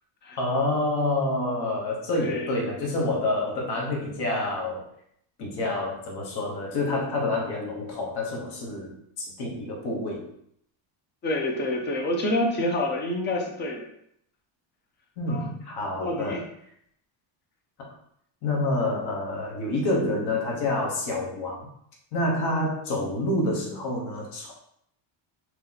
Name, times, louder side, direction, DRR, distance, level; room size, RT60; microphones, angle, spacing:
voice 1, 0.4-4.9 5.4-10.3 15.2-16.4 17.8-17.9 18.4-21.7 22.1-24.5, left 2 dB, 55° left, -1 dB, 1.0 m, -28 dB
voice 2, 2.1-2.5 11.2-13.9 15.3-15.5 16.0-16.4, left 1 dB, 25° left, 2 dB, 0.3 m, -27 dB
2.9 x 2.8 x 3.8 m, 0.71 s
cardioid pair, 175°, 49 cm